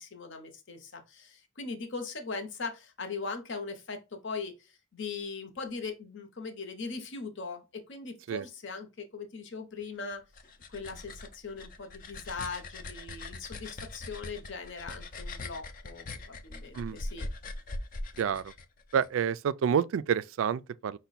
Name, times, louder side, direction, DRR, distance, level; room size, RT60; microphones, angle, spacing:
voice 1, 0.0-10.2 10.7-17.3, left 4 dB, 60° left, 0.8 m, -40 dB
sound 1, 10.1-19.1, left 2 dB, 40° left, 0.5 m, -41 dB
voice 2, 18.2-18.5 18.9-21.0, right 7 dB, 65° right, 0.3 m, -28 dB
5.4 x 2.2 x 4.0 m
head